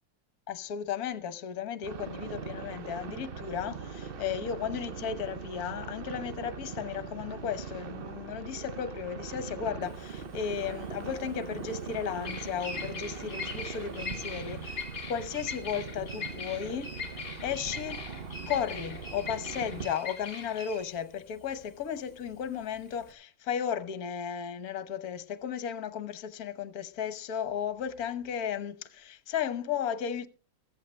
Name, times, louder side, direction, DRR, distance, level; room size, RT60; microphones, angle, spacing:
voice 1, 0.5-17.0 17.4-18.0 18.5-30.3, left 8 dB, 55° left, 1.4 m, -35 dB
sound 1, 1.8-19.9, right 5 dB, 85° right, 0.5 m, -41 dB
Bird vocalization bird call bird song, 9.8-23.1, left 4 dB, 30° left, 1.9 m, -41 dB
15.5 x 14.0 x 3.2 m
omnidirectional pair, 2.1 m